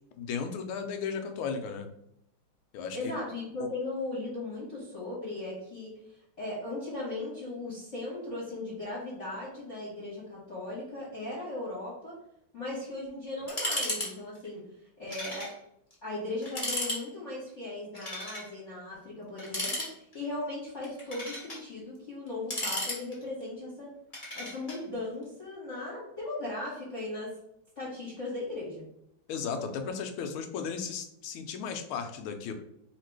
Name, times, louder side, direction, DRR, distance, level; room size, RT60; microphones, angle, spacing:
voice 1, 0.2-1.9 2.7-3.0 29.3-32.5, left 6 dB, 80° left, 6 dB, 1.4 m, -35 dB
voice 2, 2.9-12.1 12.5-14.6 15.0-15.5 16.0-23.9 24.3-27.3 27.7-28.9, left 2 dB, 40° left, -5 dB, 1.3 m, -37 dB
sound 1, 13.5-14.1 14.3-14.5 15.1-15.5 15.9-16.0 16.4-17.0 17.9-18.5 19.4-20.2 20.8-21.6 22.3-23.4 24.1-24.8, left 1 dB, 25° left, 1.0 m, -34 dB
3.2 x 2.9 x 4.5 m, 0.75 s
omnidirectional pair, 2.3 m